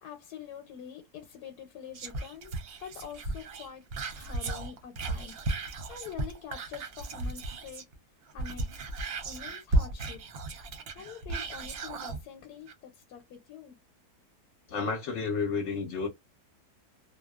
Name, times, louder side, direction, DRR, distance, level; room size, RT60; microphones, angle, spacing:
voice 1, 0.0-2.5 2.8-3.8 4.1-5.4 5.7-7.8 8.3-8.7 9.2-10.2 10.9-13.8, left 8 dB, 90° left, 1.1 m, -45 dB
Whispering, 1.9-7.9 8.3-12.2 12.7-12.8, right 2 dB, 65° right, 0.6 m, -34 dB
voice 2, 14.7-16.1, left 4 dB, 60° left, 0.9 m, -31 dB
2.6 x 2.1 x 2.3 m
omnidirectional pair, 1.6 m